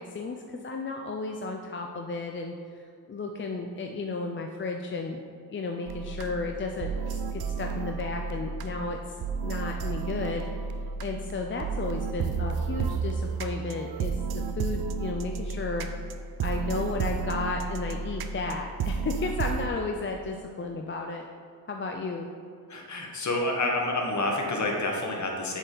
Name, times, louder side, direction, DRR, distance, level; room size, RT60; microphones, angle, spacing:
voice 1, 0.1-2.8 3.1-5.2 5.5-9.2 9.4-10.4 11.0-15.9 16.4-21.3 21.7-22.3, left 3 dB, 30° left, 2 dB, 0.4 m, -33 dB
sound 1, 5.9-19.7, right 5 dB, 75° right, 0.6 m, -32 dB
voice 2, 22.7-25.6, left 2 dB, 45° left, 1 dB, 1.3 m, -28 dB
7.9 x 6.7 x 3.9 m, 2.2 s
wide cardioid pair, 140°, 38 cm